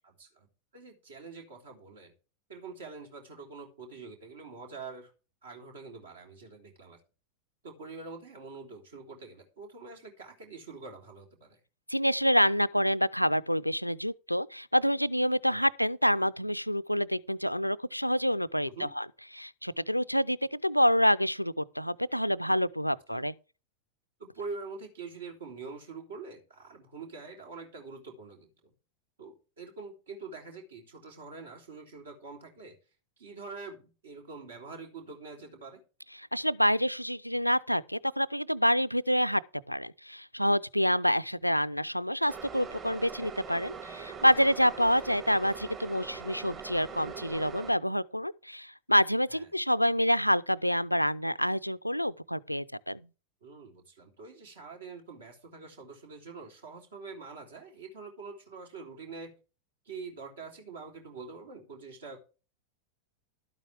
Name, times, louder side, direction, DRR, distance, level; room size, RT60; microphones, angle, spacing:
voice 1, 0.0-0.5 0.7-2.1 2.5-5.1 5.4-7.0 7.6-11.6 15.5-15.6 18.6-18.9 23.1-23.2 24.2-28.7 29.2-32.8 33.2-35.8 44.2-44.4 49.3-49.5 53.4-59.3 59.9-62.2, right 4 dB, 65° right, 3.4 m, -45 dB
voice 2, 11.9-19.1 19.4-23.3 36.2-39.4 39.7-53.0, equal, 90° left, 0.4 m, -27 dB
sound 1, 42.3-47.7, right 5 dB, 30° right, 2.0 m, -42 dB
12.5 x 9.0 x 3.4 m
figure-of-eight pair, 90°, 0 cm